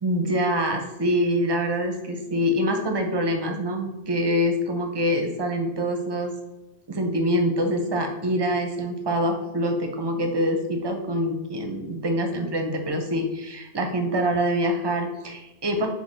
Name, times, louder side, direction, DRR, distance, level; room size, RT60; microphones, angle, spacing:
voice 1, 0.0-6.3 6.9-15.9, equal, 35° right, 4 dB, 0.5 m, -25 dB
6.6 x 2.2 x 3.2 m, 1.0 s
omnidirectional pair, 1.1 m